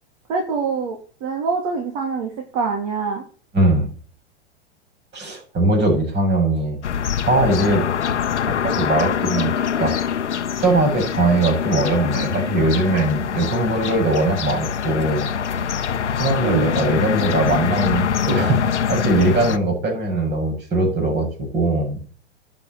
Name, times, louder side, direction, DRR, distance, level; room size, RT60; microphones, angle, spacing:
voice 1, 0.3-3.2 16.4-16.7, right 5 dB, 45° right, 2 dB, 3.6 m, -25 dB
voice 2, 3.5-3.9 5.1-6.8 7.2-7.8 8.5-9.5 9.8-9.9 10.6-15.6 16.2-18.6 18.9-22.0, right 2 dB, 30° right, 2 dB, 7.4 m, -20 dB
sound 1, 6.8-19.6, left 8 dB, 85° left, 1.0 m, -24 dB
11.0 x 6.6 x 9.3 m, 0.42 s
hypercardioid pair, 110°, 34 cm